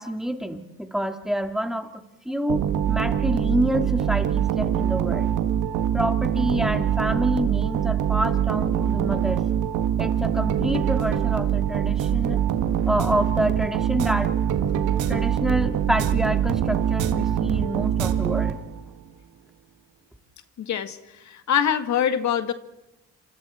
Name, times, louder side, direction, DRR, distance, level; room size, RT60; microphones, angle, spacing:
voice 1, 0.0-1.9 2.3-5.3 5.9-9.4 10.0-12.4 12.9-14.4 15.1-18.6, equal, ahead, 5 dB, 2.5 m, -27 dB
sound 1, 2.5-18.9, right 9 dB, 80° right, 1.8 m, -24 dB
voice 2, 20.6-22.5, left 9 dB, 65° left, 9 dB, 2.0 m, -24 dB
28.5 x 26.0 x 4.4 m, 1.0 s
cardioid pair, 90°, 30 cm